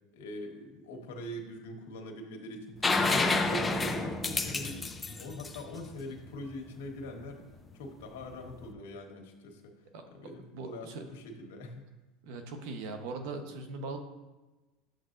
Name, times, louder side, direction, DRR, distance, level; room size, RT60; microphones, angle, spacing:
voice 1, 0.1-4.8 5.2-7.4 7.7-9.7 10.1-11.8, left 1 dB, 90° left, 3 dB, 1.4 m, -43 dB
sound 1, 2.8-6.5 8.4-8.5, left 3 dB, 15° left, 0.6 m, -29 dB
voice 2, 10.5-11.0 12.2-14.0, right 3 dB, 70° right, 5 dB, 1.0 m, -40 dB
7.8 x 7.3 x 2.6 m, 1.2 s
supercardioid pair, 130°, 0 cm